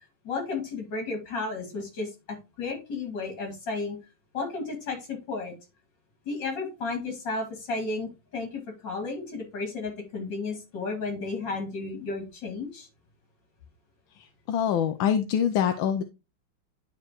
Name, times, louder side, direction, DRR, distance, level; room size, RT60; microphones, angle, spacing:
voice 1, 0.2-4.0 4.3-5.5 6.3-12.9, left 3 dB, 60° left, 2 dB, 3.0 m, -33 dB
voice 2, 14.5-16.0, left 8 dB, 75° left, 7 dB, 1.3 m, -24 dB
11.0 x 4.4 x 3.0 m, 0.26 s
omnidirectional pair, 2.3 m